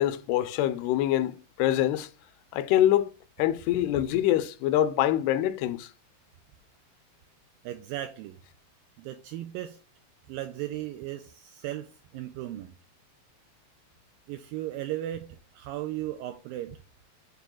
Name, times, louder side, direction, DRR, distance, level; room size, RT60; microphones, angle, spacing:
voice 1, 0.0-2.1 2.5-3.1 3.4-5.9, left 12 dB, 85° left, 2.6 m, -25 dB
voice 2, 7.6-8.4 9.0-9.8 10.3-12.8 14.3-16.8, right 13 dB, 85° right, 2.1 m, -36 dB
8.9 x 3.4 x 6.1 m
omnidirectional pair, 4.7 m